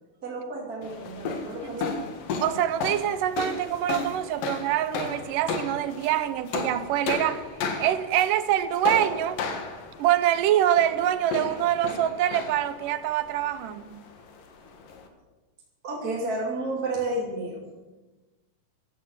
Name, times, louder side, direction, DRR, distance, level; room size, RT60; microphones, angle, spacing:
voice 1, 0.2-1.9 15.8-17.6, right 2 dB, 30° right, -2 dB, 3.1 m, -31 dB
sound 1, 0.8-15.1, left 4 dB, 85° left, 3.4 m, -34 dB
voice 2, 2.4-7.5 7.8-9.4 10.0-14.0, right 12 dB, 80° right, 13 dB, 2.4 m, -25 dB
15.5 x 11.5 x 7.4 m, 1.2 s
omnidirectional pair, 3.8 m